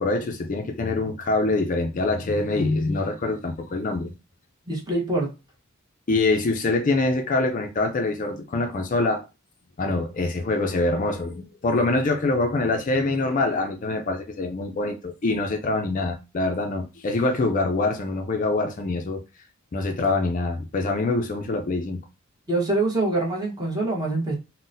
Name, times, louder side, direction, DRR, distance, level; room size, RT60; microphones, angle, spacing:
voice 1, 0.0-4.1 6.1-9.2 9.8-19.2 19.7-22.0, left 2 dB, 35° left, 0.4 m, -24 dB
voice 2, 4.7-5.3 22.5-24.4, right 2 dB, 20° right, 1.0 m, -24 dB
3.8 x 2.1 x 2.6 m
head